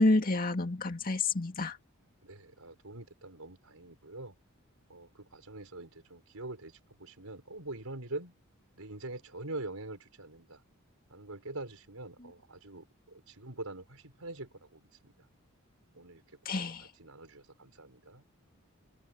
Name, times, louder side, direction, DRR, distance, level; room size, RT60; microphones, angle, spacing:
voice 1, 0.0-1.8 16.5-16.9, left 2 dB, 40° left, 2.1 m, -28 dB
voice 2, 2.2-4.3 4.9-6.7 7.0-8.4 8.8-10.6 11.1-15.1 15.9-16.2 16.6-16.7 17.0-18.2, right 2 dB, 85° right, 4.5 m, -44 dB
open air
head